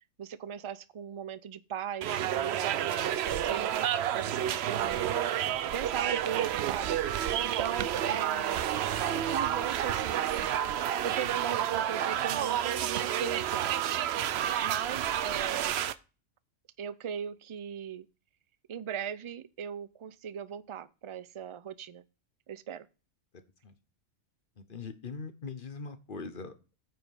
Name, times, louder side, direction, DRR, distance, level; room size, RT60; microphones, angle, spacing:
voice 1, 0.2-3.7 4.1-5.1 5.7-7.0 7.4-8.7 9.1-10.3 11.0-14.0 14.6-15.7 16.8-18.1 18.7-22.0 22.5-22.9, right 8 dB, 45° right, 0.4 m, -38 dB
sound 1, 2.0-15.9, right 10 dB, 65° right, 0.8 m, -30 dB
voice 2, 24.6-26.8, left 4 dB, 45° left, 1.1 m, -42 dB
9.3 x 5.0 x 5.3 m
omnidirectional pair, 1.3 m